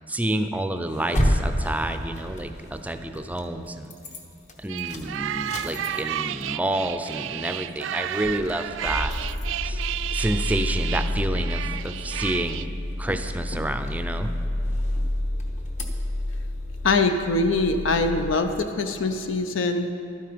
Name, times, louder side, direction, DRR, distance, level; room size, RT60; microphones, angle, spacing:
voice 1, 0.1-3.9 4.6-9.1 9.6-9.8 10.1-12.7 13.0-14.3, right 1 dB, 10° right, 8 dB, 0.5 m, -29 dB
sound 1, 0.9-3.5 3.8-4.2 4.5-6.3 6.7-6.8 7.0-7.1 7.7-7.9 8.2-18.4, left 1 dB, 40° left, 1.0 m, -29 dB
sound 2, 4.7-12.7, right 11 dB, 75° right, 0.3 m, -32 dB
voice 2, 16.8-19.9, left 3 dB, 80° left, 7 dB, 0.6 m, -23 dB
12.0 x 9.2 x 5.1 m, 2.7 s
head